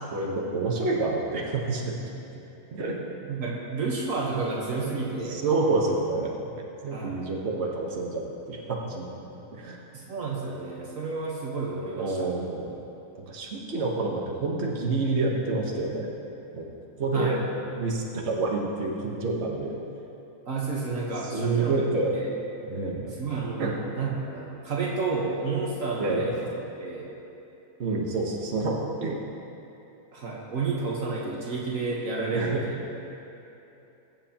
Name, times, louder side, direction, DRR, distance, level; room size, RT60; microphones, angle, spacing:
voice 1, 0.1-2.0 2.7-3.0 5.0-9.1 9.5-9.8 12.0-12.7 13.1-16.1 16.5-16.7 17.0-17.4 17.7-19.7 21.3-22.1 22.6-23.1 23.6-23.8 26.0-26.3 27.8-29.2 32.3-32.6, right 3 dB, 50° right, -2 dB, 1.5 m, -28 dB
voice 2, 3.2-5.4 6.9-7.2 9.9-12.3 17.1-17.4 20.5-21.8 22.1-22.3 23.2-23.7 24.0-26.4 26.8-27.1 30.1-32.7, right 4 dB, 65° right, -3 dB, 1.6 m, -30 dB
22.5 x 7.6 x 2.9 m, 2.9 s
omnidirectional pair, 1.5 m